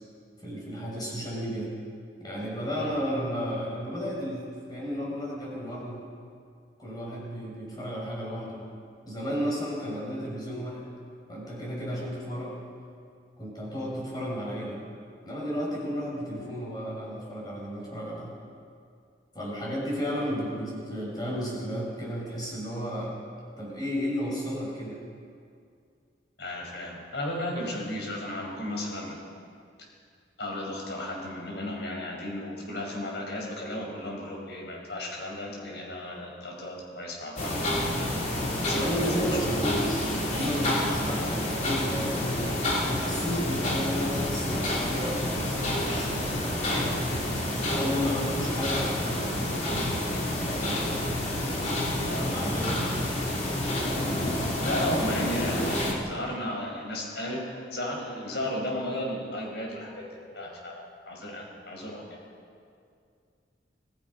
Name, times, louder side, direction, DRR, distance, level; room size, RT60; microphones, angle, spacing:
voice 1, 0.4-1.7 2.2-6.0 6.8-8.6 9.0-10.9 11.3-12.6 13.4-14.8 15.2-18.3 19.3-23.2 23.6-25.0 38.7-47.0 47.7-51.0 52.2-52.9, equal, 20° left, -4 dB, 6.6 m, -33 dB
voice 2, 26.4-29.2 30.4-37.7 38.7-39.4 40.8-41.0 52.0-52.3 54.6-57.4 57.7-60.0 60.3-62.0, left 1 dB, 70° left, 0 dB, 5.6 m, -34 dB
sound 1, 37.4-55.9, left 1 dB, 40° left, 3.4 m, -29 dB
26.0 x 18.0 x 5.6 m, 2.3 s
head